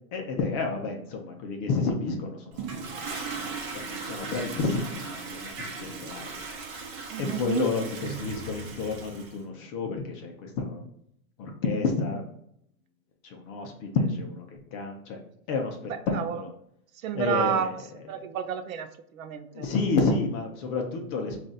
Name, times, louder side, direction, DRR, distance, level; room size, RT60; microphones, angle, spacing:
voice 1, 0.1-2.7 3.4-6.4 7.2-10.8 11.4-12.2 13.2-15.2 15.5-16.5 17.1-17.7 18.1-18.2 19.5-21.4, left 4 dB, 25° left, 2 dB, 0.4 m, -30 dB
Toilet flush, 2.5-9.4, right 4 dB, 40° right, 0.9 m, -37 dB
voice 2, 7.1-7.7 16.1-16.4 17.0-17.8 18.1-19.7, right 9 dB, 75° right, 9 dB, 0.6 m, -30 dB
3.9 x 2.5 x 3.8 m, 0.71 s
hypercardioid pair, 140°, 41 cm